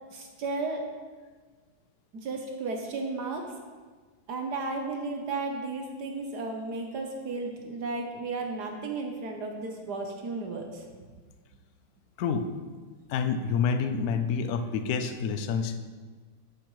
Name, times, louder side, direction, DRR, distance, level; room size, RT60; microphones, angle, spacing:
voice 1, 0.1-0.9 2.2-3.5 4.3-10.8, right 3 dB, 60° right, 3 dB, 1.4 m, -34 dB
voice 2, 13.1-15.8, left 6 dB, 65° left, 9 dB, 1.0 m, -28 dB
10.0 x 8.7 x 3.1 m, 1.4 s
omnidirectional pair, 2.1 m